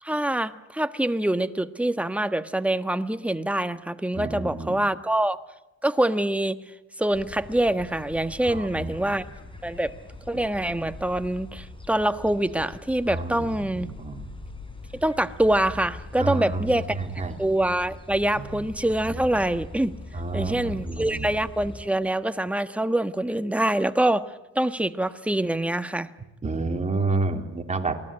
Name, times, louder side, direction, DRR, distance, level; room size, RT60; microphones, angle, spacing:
voice 1, 0.0-5.4 5.8-6.6 7.0-9.3 9.6-9.9 10.3-13.9 15.0-17.0 17.4-19.9 20.3-24.2 24.5-26.1, right 1 dB, 5° right, 10 dB, 1.4 m, -25 dB
voice 2, 4.1-4.8 8.4-8.9 13.1-14.3 16.2-17.3 18.4-18.5 19.0-19.2 20.1-21.3 26.4-28.1, right 3 dB, 25° right, 4 dB, 3.3 m, -30 dB
sound 1, 7.1-21.9, left 2 dB, 15° left, 4.4 m, -42 dB
28.0 x 19.0 x 9.9 m, 0.96 s
cardioid pair, 90°, 30 cm